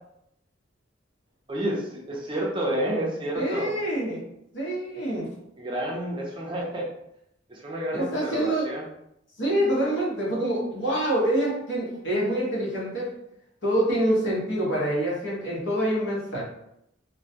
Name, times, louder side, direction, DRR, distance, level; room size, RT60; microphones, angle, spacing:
voice 1, 1.5-3.7 5.6-6.9 7.5-8.8, right 1 dB, 25° right, -3 dB, 0.5 m, -30 dB
voice 2, 3.3-4.2 4.5-5.3 7.9-8.7 9.4-13.1 13.6-16.4, right 1 dB, 70° left, -5 dB, 0.9 m, -26 dB
2.2 x 2.1 x 2.7 m, 0.78 s
head